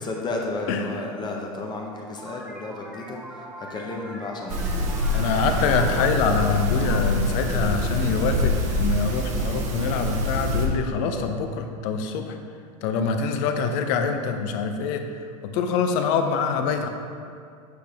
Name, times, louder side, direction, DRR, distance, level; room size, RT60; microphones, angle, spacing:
voice 1, 0.0-4.8, left 2 dB, 20° left, 0 dB, 0.8 m, -32 dB
voice 2, 0.7-1.0 5.1-12.4 12.8-15.0 15.5-16.9, left 5 dB, 55° left, 6 dB, 0.7 m, -25 dB
sound 1, 2.2-8.4, right 1 dB, 5° right, 1.0 m, -43 dB
sound 2, 4.5-10.7, equal, 40° right, 1.0 m, -25 dB
7.8 x 4.9 x 3.5 m, 2.3 s
hypercardioid pair, 110°, 19 cm